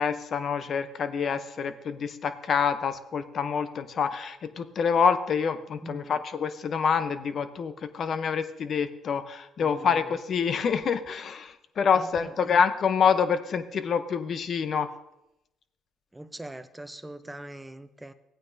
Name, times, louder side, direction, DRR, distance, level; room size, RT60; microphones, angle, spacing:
voice 1, 0.0-14.9, left 6 dB, 55° left, 11 dB, 0.7 m, -27 dB
voice 2, 5.8-6.2 9.6-10.2 11.9-12.6 16.1-18.1, right 1 dB, 10° right, 10 dB, 0.7 m, -43 dB
16.0 x 8.9 x 2.7 m, 0.90 s
supercardioid pair, 70°, 0 cm